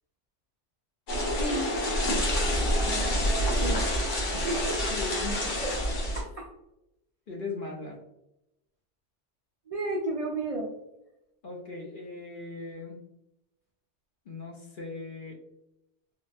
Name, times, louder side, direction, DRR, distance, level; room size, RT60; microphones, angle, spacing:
sound 1, 1.1-6.2, equal, 80° left, 1.3 m, -27 dB
voice 1, 1.4-1.7 2.8-3.1 3.6-3.8 4.4-4.8 5.6-5.7 6.1-6.5 9.7-10.7, right 2 dB, 60° right, -2 dB, 0.4 m, -32 dB
voice 2, 4.3-5.6 7.3-8.0 11.4-13.0 14.3-15.4, left 3 dB, 55° left, 0 dB, 0.7 m, -39 dB
3.4 x 2.2 x 2.5 m, 0.86 s
omnidirectional pair, 1.2 m